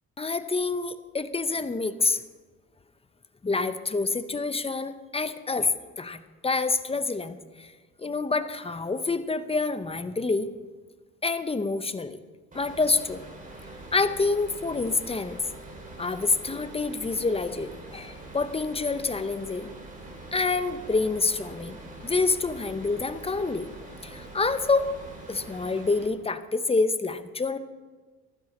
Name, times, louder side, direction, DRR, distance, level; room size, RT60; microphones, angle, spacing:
voice 1, 0.2-2.2 3.4-7.7 8.0-10.5 11.2-12.2 12.5-13.2 13.9-15.4 16.0-19.7 20.3-21.8 22.0-23.7 24.0-24.9 25.3-27.6, left 3 dB, 20° left, 11 dB, 0.8 m, -27 dB
sound 1, 12.5-26.1, right 2 dB, 25° right, 3.0 m, -44 dB
14.5 x 12.5 x 4.3 m, 1.3 s
cardioid pair, 90°, 30 cm